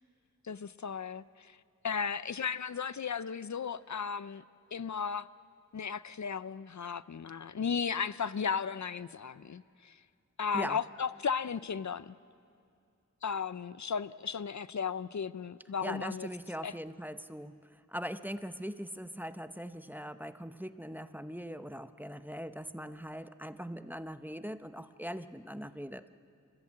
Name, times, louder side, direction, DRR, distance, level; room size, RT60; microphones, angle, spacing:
voice 1, 0.4-1.5 1.8-4.4 4.7-5.3 5.7-10.0 10.4-12.1 13.2-16.3 16.6-16.7, left 6 dB, 70° left, 16 dB, 0.5 m, -35 dB
voice 2, 15.8-26.0, equal, 5° right, 11 dB, 0.7 m, -41 dB
28.0 x 14.5 x 8.8 m, 2.4 s
wide cardioid pair, 55°, 30 cm